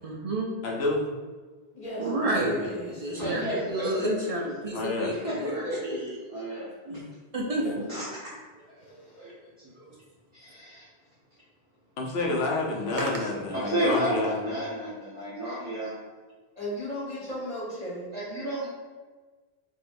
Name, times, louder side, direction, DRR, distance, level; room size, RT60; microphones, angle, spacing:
voice 1, 0.0-0.5 2.0-3.4 3.7-6.2 6.8-7.1 7.3-8.0 8.9-9.1, right 1 dB, 50° right, -2 dB, 0.4 m, -31 dB
voice 2, 0.6-1.1 2.4-2.7 4.7-5.1 12.0-14.4, left 2 dB, 75° left, -1 dB, 1.0 m, -29 dB
voice 3, 1.7-3.4 8.8-9.3 16.5-18.1, left 1 dB, 40° left, -7 dB, 1.3 m, -36 dB
voice 4, 3.1-5.8 6.2-6.7 7.9-8.0 8.7-8.8 9.1-9.3 9.7-9.9 10.3-10.9 13.3-16.0 18.1-18.7, equal, 15° right, -12 dB, 1.0 m, -31 dB
4.7 x 2.7 x 2.6 m, 1.3 s
omnidirectional pair, 1.1 m